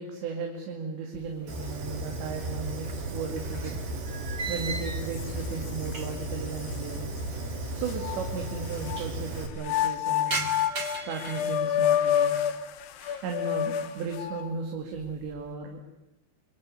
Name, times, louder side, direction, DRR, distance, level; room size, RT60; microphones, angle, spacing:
voice 1, 0.0-3.8 4.5-7.1 7.8-10.5 11.0-12.4 13.2-15.8, right 4 dB, 80° right, 3 dB, 4.6 m, -35 dB
sound 1, 1.1-2.0 2.3-6.4 6.7-6.8 7.6-7.7 7.9-8.0 8.3-8.8 9.2-12.4 12.8-13.3 13.8-14.2 14.6-15.5, right 3 dB, 25° right, 3.1 m, -39 dB
Fire, 1.5-9.5, right 1 dB, 55° right, 5.8 m, -35 dB
sound 2, 4.6-4.7 5.1-6.1 6.7-6.8 7.9-9.0 9.6-14.5, left 10 dB, 75° left, 3.4 m, -28 dB
27.0 x 22.5 x 9.8 m, 0.91 s
omnidirectional pair, 5.0 m